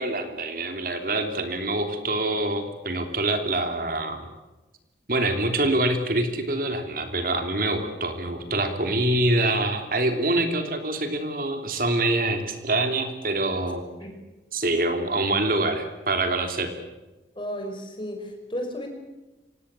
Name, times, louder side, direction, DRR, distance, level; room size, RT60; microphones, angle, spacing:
voice 1, 0.0-4.3 5.1-13.8 14.5-16.7, right 2 dB, 55° right, 6 dB, 3.2 m, -25 dB
voice 2, 17.4-18.9, equal, 30° left, 5 dB, 5.6 m, -33 dB
26.0 x 19.0 x 8.3 m, 1.1 s
head